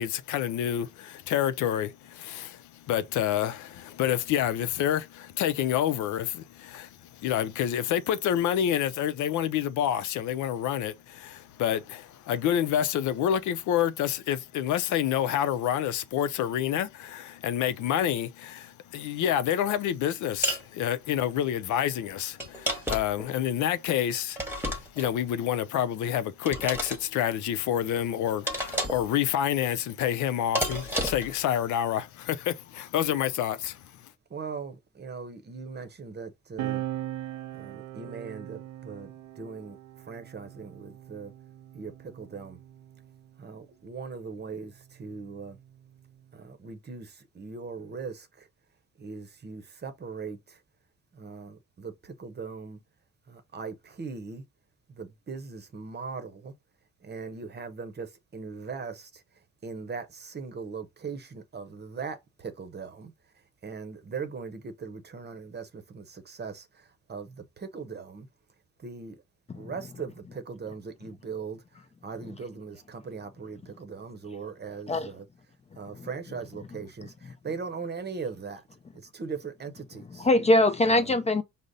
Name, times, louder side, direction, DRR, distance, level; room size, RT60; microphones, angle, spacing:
voice 1, 0.0-33.9, left 10 dB, 75° left, 0.5 m, -28 dB
sound 1, 20.4-20.7 22.4-23.2 24.4-25.1 26.5-27.0 28.5-29.1 30.6-31.4, right 1 dB, 5° right, 1.1 m, -31 dB
voice 2, 34.3-36.8 37.5-41.3 41.7-42.6 43.4-45.6 46.3-48.5 49.0-50.6 51.1-52.8 53.3-54.4 54.9-56.5 57.0-59.2 59.6-63.1 63.6-68.3 68.8-69.2 69.5-75.3 75.8-78.6 78.9-80.3 80.9-81.2, right 5 dB, 35° right, 0.8 m, -40 dB
sound 2, 36.6-43.5 44.5-46.3, right 13 dB, 80° right, 0.5 m, -40 dB
voice 3, 80.2-81.4, left 1 dB, 20° left, 0.4 m, -22 dB
5.0 x 2.0 x 3.9 m
cardioid pair, 90°, 30 cm